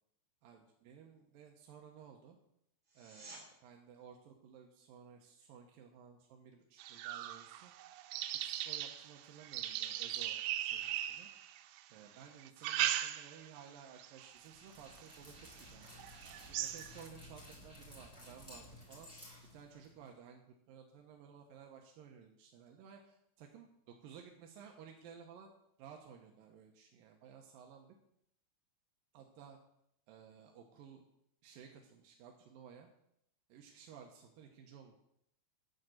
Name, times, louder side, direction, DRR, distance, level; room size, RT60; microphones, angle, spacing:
voice 1, 0.4-2.4 2.9-7.7 8.4-11.3 11.9-16.0 16.4-19.1 19.5-28.0 29.1-29.6 30.1-31.0 31.4-32.9 33.5-34.9, right 7 dB, 70° right, 2 dB, 2.2 m, -56 dB
sound 1, 2.8-3.4 14.8-14.9, right 2 dB, 25° right, 2.5 m, -52 dB
sound 2, 6.8-11.8 12.4-13.6 14.0-14.4 15.0-15.1 15.5-15.6 16.0-17.1, right 12 dB, 90° right, 2.9 m, -39 dB
Dog, 14.3-20.1, left 1 dB, 10° left, 5.2 m, -55 dB
10.5 x 7.3 x 7.8 m, 0.75 s
omnidirectional pair, 5.0 m